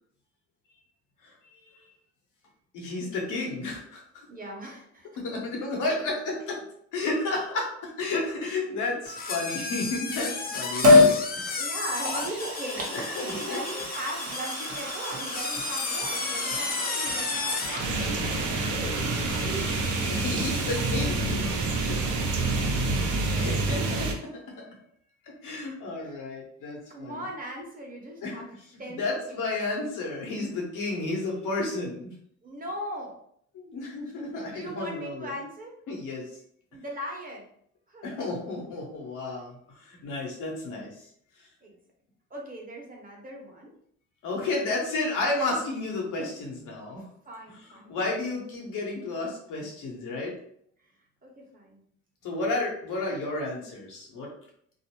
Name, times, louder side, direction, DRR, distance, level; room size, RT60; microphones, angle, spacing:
voice 1, 1.2-1.9 2.7-4.3 5.2-6.6 6.9-11.6 12.9-13.6 19.0-19.1 20.1-22.1 23.3-24.7 25.4-27.2 28.2-28.4 29.0-32.1 33.5-35.3 35.9-36.3 38.0-41.0 44.2-47.0 47.9-50.3 52.2-54.3, left 2 dB, 85° left, -2 dB, 1.0 m, -32 dB
voice 2, 4.3-5.1 11.6-19.8 21.4-21.6 26.0-26.1 26.9-28.5 28.8-29.4 32.4-33.2 34.4-35.8 36.7-37.5 37.9-38.1 41.6-41.7 42.3-43.7 47.2-48.0 50.8-50.9 51.2-51.8, right 1 dB, 30° right, -1 dB, 0.9 m, -39 dB
sound 1, 9.1-17.9, left 4 dB, 30° left, 0.4 m, -33 dB
Liquid, 10.8-11.2 11.8-21.4 21.7-21.8, left 2 dB, 50° right, 0.9 m, -27 dB
sound 2, 17.8-24.1, right 2 dB, 80° right, 0.6 m, -27 dB
2.6 x 2.0 x 2.9 m, 0.65 s
cardioid pair, 90°, 30 cm